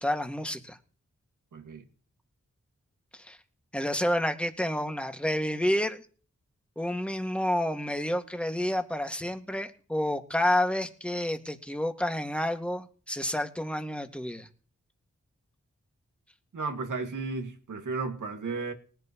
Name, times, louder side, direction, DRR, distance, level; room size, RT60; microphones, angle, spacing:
voice 1, 0.0-0.8 3.1-3.4 3.7-6.0 6.8-14.5, left 1 dB, 5° left, 1.9 m, -29 dB
voice 2, 1.5-1.8 16.5-18.7, right 4 dB, 90° right, 2.1 m, -34 dB
19.0 x 11.0 x 3.0 m
cardioid pair, 40°, 30 cm